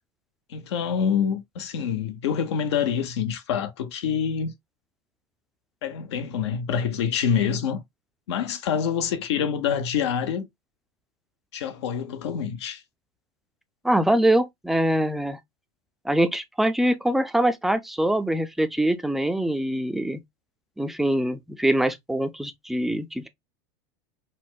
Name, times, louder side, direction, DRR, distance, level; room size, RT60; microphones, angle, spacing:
voice 1, 0.5-4.5 5.8-7.8 8.3-10.5 11.5-12.8, left 7 dB, 85° left, 0.6 m, -26 dB
voice 2, 13.8-15.4 16.1-20.2 20.8-23.3, right 1 dB, ahead, 0.3 m, -23 dB
4.1 x 2.0 x 2.2 m
supercardioid pair, 120°, 14 cm